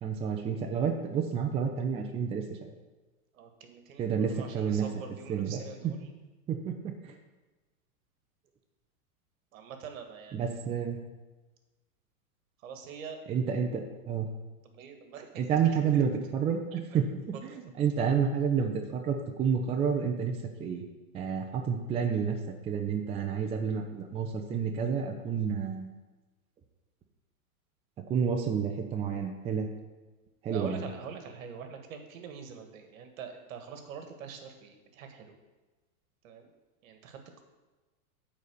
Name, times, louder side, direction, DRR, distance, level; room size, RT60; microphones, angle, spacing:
voice 1, 0.0-2.4 4.0-4.9 5.3-5.9 6.5-6.9 10.3-11.0 13.3-14.3 15.4-17.1 17.5-20.3 20.6-20.8 21.1-22.4 22.7-25.9 28.1-29.7 30.4-30.9, right 7 dB, 15° right, 4 dB, 0.5 m, -29 dB
voice 2, 3.3-6.1 9.5-10.6 12.6-13.2 14.7-15.4 15.7-16.0 16.7-17.0 17.3-17.4 30.5-35.4 36.2-36.5 36.8-37.4, right 6 dB, 65° right, 6 dB, 1.6 m, -45 dB
9.0 x 4.2 x 6.8 m, 1.2 s
hypercardioid pair, 125°, 43 cm